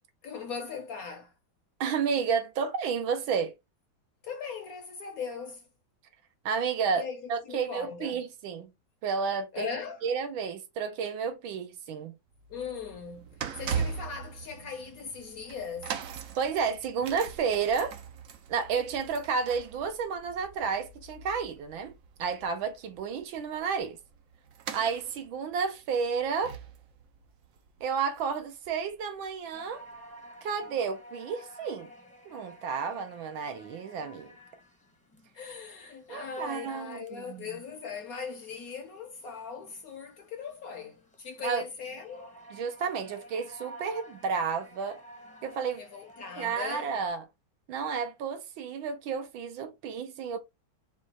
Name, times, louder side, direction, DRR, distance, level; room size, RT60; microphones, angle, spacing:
voice 1, 0.2-1.3 4.2-5.6 6.9-8.2 9.5-10.0 12.5-13.3 13.6-15.9 35.3-42.3 45.8-46.9, left 6 dB, 60° left, 1.0 m, -39 dB
voice 2, 1.8-3.5 6.4-8.7 9.0-9.7 10.0-12.1 16.4-17.9 18.5-21.9 22.2-24.0 24.7-26.6 27.8-29.8 30.4-31.9 32.3-34.3 36.1-37.6 41.4-41.6 42.5-45.0 45.4-45.8 46.4-47.2 47.7-50.4, right 6 dB, 85° right, 1.7 m, -31 dB
sound 1, 12.3-28.7 28.9-29.2 30.0-30.1, right 6 dB, 65° right, 0.8 m, -41 dB
sound 2, 29.5-47.1, equal, 5° left, 0.6 m, -52 dB
4.9 x 2.4 x 4.1 m
omnidirectional pair, 2.1 m